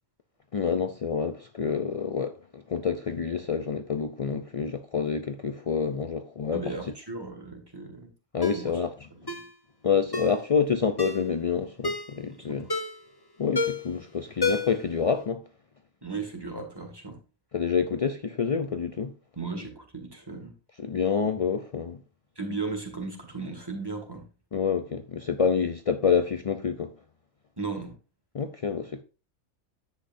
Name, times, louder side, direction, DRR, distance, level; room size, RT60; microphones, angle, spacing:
voice 1, 0.5-6.7 8.3-8.9 9.8-12.7 13.4-15.4 17.5-19.1 20.8-22.0 24.5-26.9 28.3-29.0, left 6 dB, 60° left, 0.3 m, -27 dB
voice 2, 6.5-8.1 8.5-8.7 9.1-9.4 12.3-12.6 16.0-17.2 19.4-20.5 22.4-24.2 27.6-28.0, right 3 dB, 15° right, 2.0 m, -36 dB
Ringtone, 8.4-8.6 9.3-9.5 10.1-10.4 11.0-11.3 11.8-12.1 12.7-13.1 13.5-13.9 14.4-14.9 15.2-15.3, left 3 dB, 20° left, 1.0 m, -29 dB
10.0 x 8.2 x 2.6 m
omnidirectional pair, 1.4 m